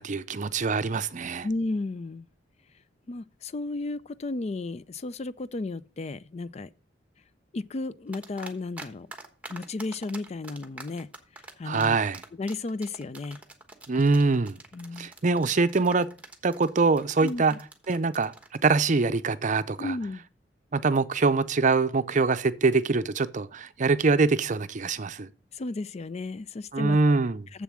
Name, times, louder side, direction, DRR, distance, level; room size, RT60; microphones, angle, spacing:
voice 1, 0.0-1.5 11.6-12.2 13.9-14.6 15.0-16.1 16.4-17.5 17.9-18.3 18.6-19.9 20.7-25.3 26.7-27.4, right 4 dB, 45° right, 0.6 m, -24 dB
voice 2, 1.4-2.3 3.1-6.7 7.5-9.1 9.5-11.1 11.6-12.0 12.4-13.4 14.7-15.1 17.2-17.6 19.8-20.2 25.5-27.0 27.5-27.6, left 2 dB, 35° left, 0.4 m, -33 dB
sound 1, 8.1-8.9 9.1-18.6, right 3 dB, 10° right, 1.2 m, -44 dB
7.5 x 6.9 x 6.2 m
head